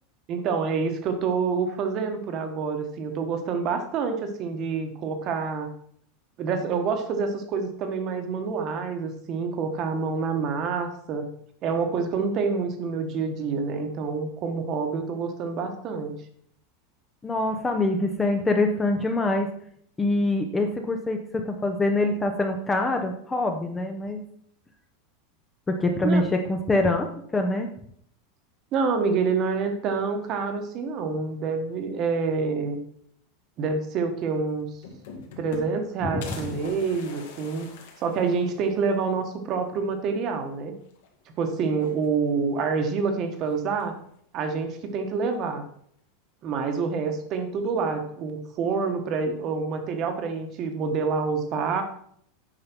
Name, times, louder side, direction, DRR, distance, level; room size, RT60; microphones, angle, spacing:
voice 1, 0.3-5.7 6.4-11.3 11.6-16.1 26.0-26.2 28.7-32.8 33.6-34.7 35.4-37.7 38.0-40.7 41.4-44.0 44.3-45.7 46.4-51.8, right 5 dB, 30° right, 7 dB, 1.1 m, -27 dB
voice 2, 17.2-19.5 20.0-24.2 25.7-27.7 36.0-36.5, left 2 dB, 10° left, 5 dB, 0.6 m, -25 dB
sound 1, 34.2-34.3 34.6-35.9 36.2-38.8 39.2-39.3 39.6-39.7 40.8-41.3 41.7-42.4 43.4-44.0, left 4 dB, 70° left, 2.2 m, -43 dB
8.9 x 5.4 x 5.9 m, 0.66 s
supercardioid pair, 175°, 0 cm